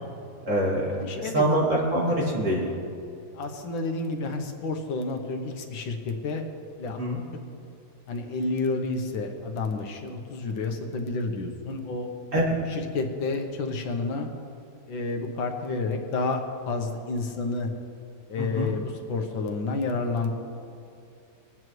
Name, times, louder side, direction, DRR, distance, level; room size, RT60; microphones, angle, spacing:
voice 1, 0.5-0.8 1.2-2.8 7.0-7.2 12.3-12.4 18.4-18.7, right 1 dB, 40° right, -5 dB, 2.7 m, -24 dB
voice 2, 1.0-1.5 3.3-6.5 6.8-7.0 8.1-12.1 12.7-14.3 14.9-17.7 18.3-20.3, left 3 dB, 80° left, 4 dB, 1.8 m, -30 dB
21.0 x 9.4 x 3.1 m, 2.5 s
omnidirectional pair, 2.1 m